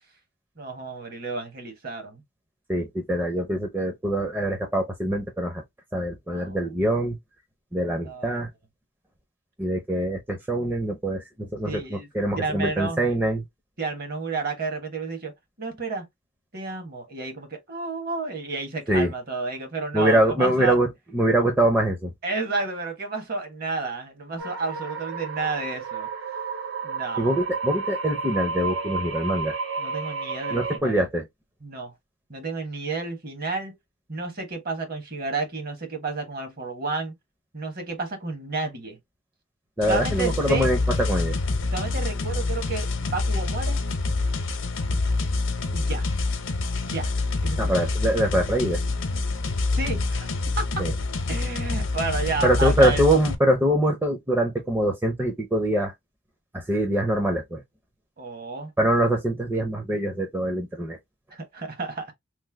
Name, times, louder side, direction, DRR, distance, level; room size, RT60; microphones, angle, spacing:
voice 1, 0.6-2.2 6.3-6.6 8.0-8.5 11.6-12.1 12.3-13.1 13.8-15.3 15.6-16.1 16.5-20.7 22.2-26.1 26.8-27.4 29.8-31.0 31.6-31.9 32.3-33.7 34.1-37.1 37.5-39.0 39.8-40.7 41.7-43.8 45.7-46.0 46.8-47.1 47.4-47.8 49.7-50.3 50.6-50.8 51.3-53.1 58.2-58.7 61.3-62.1, right 3 dB, 50° right, 1.1 m, -31 dB
voice 2, 2.7-5.6 5.9-7.2 7.7-8.5 9.6-13.4 18.9-19.1 19.9-20.9 21.1-22.1 27.2-29.6 30.5-31.3 39.8-41.4 47.6-48.8 50.8-50.9 52.4-55.9 56.5-57.6 58.8-61.0, right 1 dB, 10° right, 0.5 m, -24 dB
sound 1, 24.4-30.8, right 4 dB, 80° right, 0.9 m, -31 dB
sound 2, 39.8-53.3, left 3 dB, 80° left, 0.7 m, -26 dB
3.2 x 2.0 x 3.3 m
head